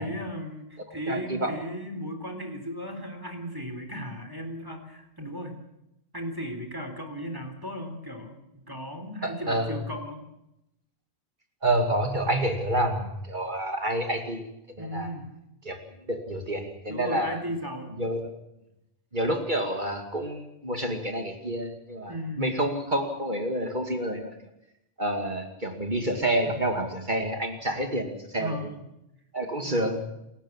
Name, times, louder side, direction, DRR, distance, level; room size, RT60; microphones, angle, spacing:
voice 1, 0.0-5.6 6.1-10.2 14.8-15.3 16.9-18.0 22.1-22.5 26.5-26.6 28.4-28.9 29.6-29.9, equal, 20° right, 5 dB, 3.6 m, -36 dB
voice 2, 1.1-1.5 9.2-9.8 11.6-14.5 14.8-15.1 15.6-15.8 16.1-17.4 18.0-18.3 19.1-24.3 25.0-28.6 29.3-30.0, right 1 dB, 45° right, 5 dB, 2.7 m, -28 dB
29.0 x 15.0 x 7.4 m, 0.84 s
omnidirectional pair, 1.1 m